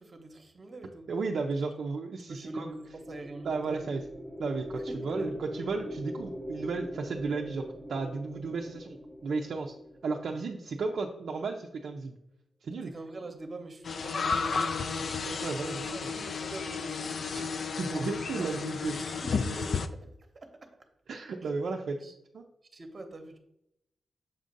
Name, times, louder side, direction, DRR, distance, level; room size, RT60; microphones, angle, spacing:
voice 1, 0.0-1.1 2.3-4.0 4.9-5.4 12.8-17.3 19.1-20.9 21.4-21.5 22.0-22.1 22.7-23.4, right 2 dB, 35° right, 5 dB, 0.8 m, -45 dB
voice 2, 1.1-2.7 3.4-4.0 4.4-9.0 9.2-9.7 10.0-12.2 12.6-12.9 15.4-15.9 17.3-17.5 17.8-19.0 21.1-22.0 22.3-22.4, right 4 dB, 70° right, 1 dB, 0.5 m, -33 dB
sound 1, 2.4-10.9, equal, 5° left, 0.8 m, -42 dB
sound 2, 13.8-19.9, left 5 dB, 55° left, 0.3 m, -32 dB
7.1 x 2.5 x 5.2 m, 0.82 s
wide cardioid pair, 115°, 0 cm